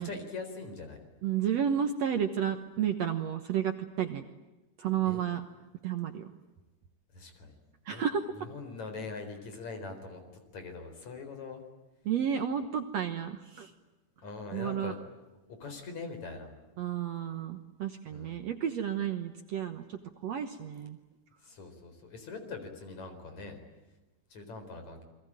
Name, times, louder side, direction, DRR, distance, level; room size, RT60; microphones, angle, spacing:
voice 1, 0.0-1.0 5.1-5.2 7.1-7.6 7.9-8.1 8.4-10.2 10.5-11.6 14.2-15.0 15.5-16.5 18.1-18.4 21.4-23.6 24.3-25.0, left 4 dB, 50° left, 7 dB, 5.4 m, -42 dB
voice 2, 1.2-4.2 4.8-5.4 5.8-6.3 7.9-8.2 12.1-13.7 14.5-14.9 16.8-21.0, right 9 dB, 60° right, 8 dB, 2.0 m, -32 dB
29.0 x 22.5 x 8.9 m, 1.1 s
omnidirectional pair, 4.0 m